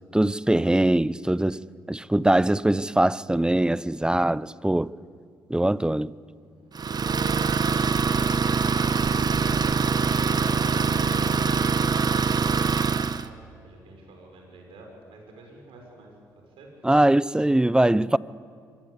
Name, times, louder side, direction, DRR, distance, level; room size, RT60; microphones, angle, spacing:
voice 1, 0.1-1.6 1.9-4.9 5.5-6.1 16.8-18.2, right 1 dB, 10° right, 0.7 m, -22 dB
voice 2, 6.4-6.8 8.8-16.7, right 2 dB, 70° right, 6.5 m, -49 dB
Idling, 6.7-13.3, right 5 dB, 45° right, 1.2 m, -23 dB
25.0 x 20.5 x 8.3 m
hypercardioid pair, 45°, 10 cm